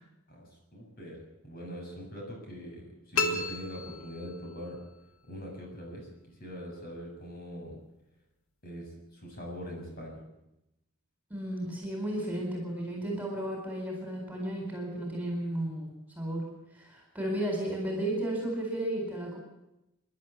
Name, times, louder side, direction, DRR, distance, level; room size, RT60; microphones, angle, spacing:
voice 1, 0.3-4.8 5.3-7.8 8.6-10.2, equal, 45° left, 0 dB, 7.0 m, -42 dB
sound 1, 3.1-4.7, left 4 dB, 85° left, 2.0 m, -33 dB
voice 2, 11.3-16.5 16.7-19.4, right 1 dB, 5° right, 0 dB, 4.4 m, -33 dB
27.5 x 11.5 x 8.4 m, 0.90 s
head